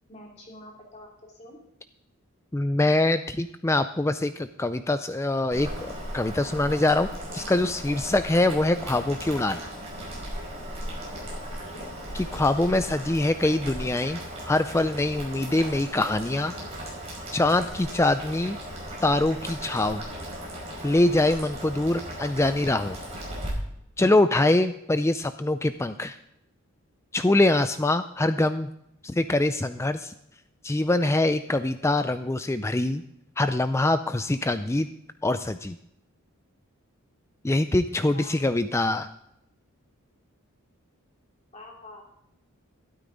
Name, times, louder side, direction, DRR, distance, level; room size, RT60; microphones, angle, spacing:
voice 1, 0.1-1.6 11.6-11.8 38.1-38.3 41.5-42.1, left 1 dB, 30° left, -2 dB, 2.9 m, -46 dB
voice 2, 2.5-9.6 12.1-14.2 14.5-16.5 17.3-18.6 19.0-20.0 20.8-23.0 24.0-26.2 27.1-28.7 29.0-30.1 30.6-33.0 33.4-34.9 35.2-35.8 37.4-39.1, left 2 dB, 10° left, 10 dB, 0.3 m, -24 dB
Boiling, 5.5-23.5, equal, 30° right, 5.3 m, -37 dB
12.5 x 12.5 x 3.9 m, 0.76 s
head